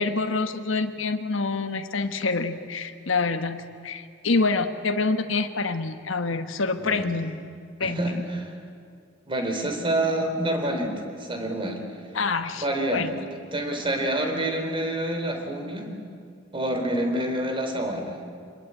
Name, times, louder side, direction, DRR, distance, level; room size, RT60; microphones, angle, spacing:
voice 1, 0.0-7.4 7.8-8.1 12.1-12.6 12.9-13.1, left 3 dB, 80° left, 8 dB, 1.3 m, -26 dB
voice 2, 6.8-7.1 7.8-8.5 9.3-11.8 12.6-13.1 13.5-16.0 16.5-18.2, right 1 dB, 25° right, 4 dB, 3.7 m, -27 dB
26.0 x 21.5 x 8.9 m, 2.2 s
head